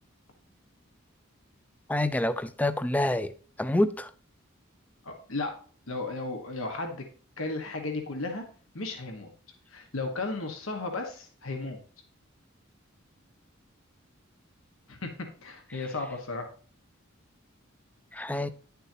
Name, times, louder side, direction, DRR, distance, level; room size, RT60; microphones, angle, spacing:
voice 1, 1.9-3.3 3.6-4.1 18.1-18.5, left 1 dB, 5° left, 0.4 m, -27 dB
voice 2, 5.0-5.5 5.9-7.0 7.4-8.4 8.7-9.3 9.7-11.8 14.9-15.1 15.4-16.5, left 3 dB, 85° left, 1.5 m, -34 dB
10.5 x 6.8 x 2.9 m
head